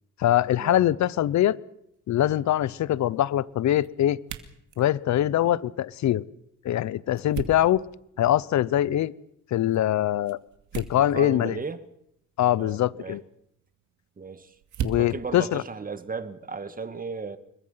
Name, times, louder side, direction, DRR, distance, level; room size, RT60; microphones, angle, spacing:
voice 1, 0.2-1.6 2.1-4.2 4.8-6.2 6.6-7.8 8.2-9.1 9.5-10.4 10.7-11.6 12.4-13.2 14.8-15.6, left 12 dB, 65° left, 0.9 m, -23 dB
sound 1, 1.8-16.6, right 8 dB, 75° right, 2.6 m, -43 dB
voice 2, 11.0-11.8 12.6-13.2 14.2-14.5 15.0-17.4, right 4 dB, 30° right, 2.1 m, -35 dB
27.5 x 22.5 x 5.8 m
cardioid pair, 90°, 30 cm